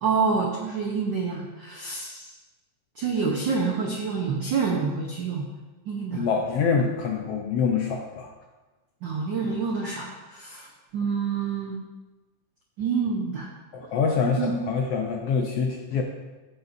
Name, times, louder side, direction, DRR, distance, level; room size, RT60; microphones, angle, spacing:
voice 1, 0.0-2.3 3.0-5.4 5.9-6.3 9.0-11.8 12.8-13.5 14.4-14.6, right 5 dB, 75° right, -2 dB, 1.0 m, -27 dB
voice 2, 6.1-8.3 13.7-16.0, left 5 dB, 75° left, 2 dB, 1.4 m, -25 dB
14.5 x 6.7 x 2.6 m, 1.2 s
omnidirectional pair, 3.4 m